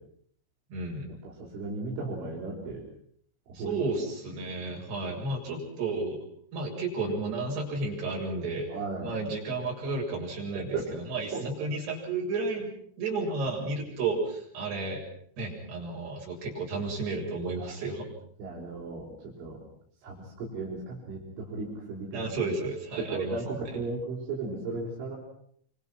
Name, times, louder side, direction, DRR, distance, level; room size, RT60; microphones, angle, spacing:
voice 1, 0.7-1.1 3.5-6.2 6.5-8.7 9.0-15.0 15.4-18.1 22.1-23.8, right 3 dB, 60° right, -2 dB, 9.6 m, -32 dB
voice 2, 1.4-2.8 3.5-3.8 8.7-9.2 10.6-10.9 11.3-11.5 13.2-13.3 17.6-17.7 18.4-19.6 20.0-22.5 23.0-25.2, right 3 dB, 75° right, -4 dB, 8.1 m, -35 dB
27.5 x 27.5 x 6.1 m, 0.65 s
omnidirectional pair, 5.6 m